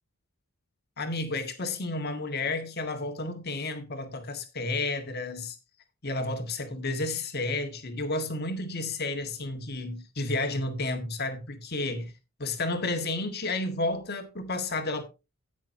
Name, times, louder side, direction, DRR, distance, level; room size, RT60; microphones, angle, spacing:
voice 1, 1.0-5.6 6.0-12.1 12.4-15.0, left 2 dB, 45° left, 1.7 m, -31 dB
16.5 x 6.2 x 2.8 m
head